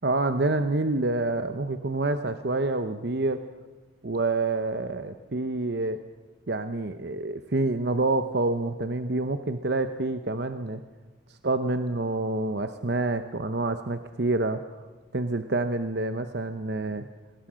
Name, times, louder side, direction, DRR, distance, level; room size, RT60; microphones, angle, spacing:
voice 1, 0.0-3.5 4.0-6.0 6.5-10.8 11.4-14.6 15.1-17.1, right 2 dB, 55° right, 9 dB, 0.8 m, -27 dB
25.5 x 20.5 x 6.3 m, 1.3 s
head